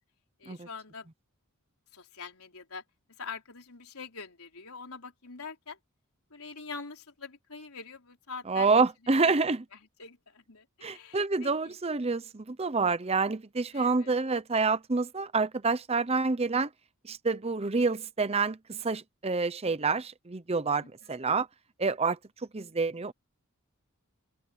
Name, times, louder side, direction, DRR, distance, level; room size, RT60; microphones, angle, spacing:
voice 1, 0.4-1.1 1.9-2.8 3.2-5.8 6.3-8.7 9.2-9.4 9.7-11.8 13.7-14.2 20.8-21.2, left 4 dB, 85° left, 4.2 m, -44 dB
voice 2, 8.5-9.6 10.8-16.7 17.0-21.5 21.8-22.2 22.5-23.1, right 4 dB, 30° right, 0.7 m, -28 dB
open air
head